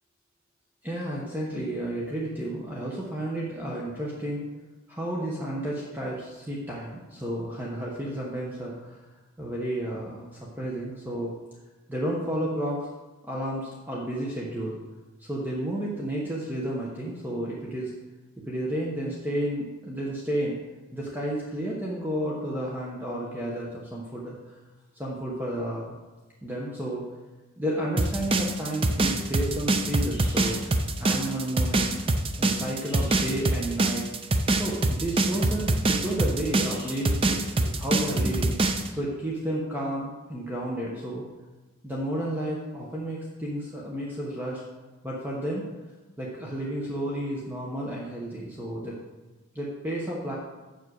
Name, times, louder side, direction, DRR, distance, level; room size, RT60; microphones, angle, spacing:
voice 1, 0.8-4.4 4.9-9.0 9.4-11.3 11.9-12.9 13.2-14.8 15.2-17.9 18.5-20.6 20.9-24.6 24.9-25.9 26.4-27.1 27.6-32.0 32.4-34.0 34.5-38.6 38.9-41.3 41.8-44.6 45.0-45.7 46.2-49.0 49.5-50.4, right 1 dB, 10° right, -4 dB, 1.1 m, -32 dB
sound 1, 28.0-38.9, right 2 dB, 25° right, 0.6 m, -24 dB
7.4 x 6.6 x 6.4 m, 1.2 s
head